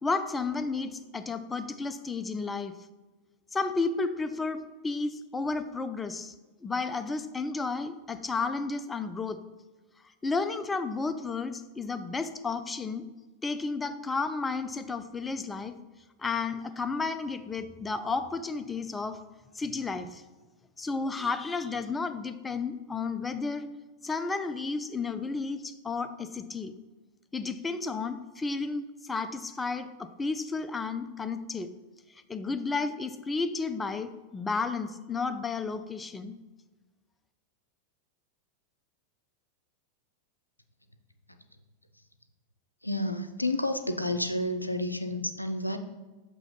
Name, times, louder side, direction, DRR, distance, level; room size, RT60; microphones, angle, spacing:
voice 1, 0.0-2.8 3.5-6.3 6.6-9.4 10.2-13.1 13.4-15.8 16.2-19.2 19.5-20.2 20.8-23.7 24.0-26.8 27.3-31.8 32.3-36.4, left 4 dB, 15° left, 11 dB, 0.4 m, -32 dB
voice 2, 42.8-45.8, left 1 dB, 85° left, 8 dB, 0.5 m, -30 dB
6.9 x 3.0 x 5.5 m, 1.2 s
figure-of-eight pair, 90°, 0 cm